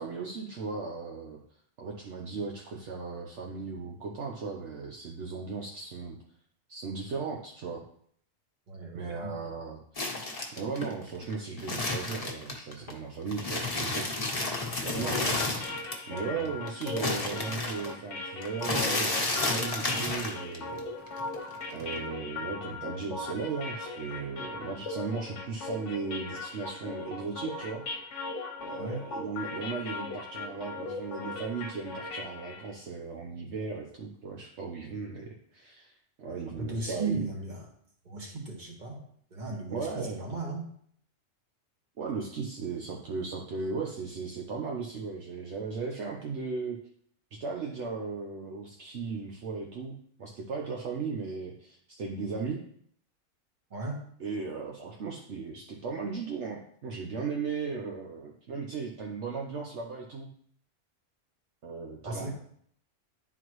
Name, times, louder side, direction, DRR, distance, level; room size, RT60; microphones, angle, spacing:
voice 1, 0.0-1.4 1.8-6.2 6.7-7.8 8.9-10.2 10.5-14.1 14.8-15.4 16.1-20.8 21.7-27.8 28.6-37.3 39.7-40.2 42.0-46.8 47.3-52.6 54.2-60.3 61.6-62.3, right 4 dB, 65° right, -1 dB, 1.1 m, -36 dB
voice 2, 8.7-9.4 14.9-15.1 16.3-16.5 28.8-29.0 36.5-37.7 38.0-39.0 39.3-40.7 53.7-54.0 62.0-62.3, right 3 dB, 40° right, -1 dB, 1.6 m, -36 dB
sound 1, 10.0-12.9 13.3-16.2 16.4-20.8 21.1-22.0, left 2 dB, 30° left, 1.1 m, -31 dB
sound 2, 14.9-32.7, left 3 dB, 70° left, 1.1 m, -39 dB
11.0 x 4.0 x 3.1 m, 0.63 s
omnidirectional pair, 1.3 m